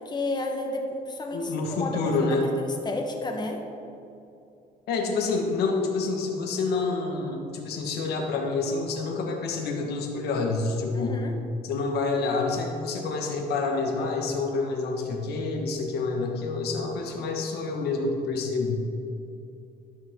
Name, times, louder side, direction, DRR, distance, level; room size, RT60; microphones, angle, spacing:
voice 1, 0.0-3.6 10.9-11.3, left 2 dB, 25° left, 2 dB, 1.1 m, -32 dB
voice 2, 1.3-2.5 4.9-11.2 11.6-18.8, left 3 dB, 75° left, 2 dB, 1.5 m, -28 dB
13.0 x 5.9 x 3.7 m, 2.7 s
cardioid pair, 110°, 17 cm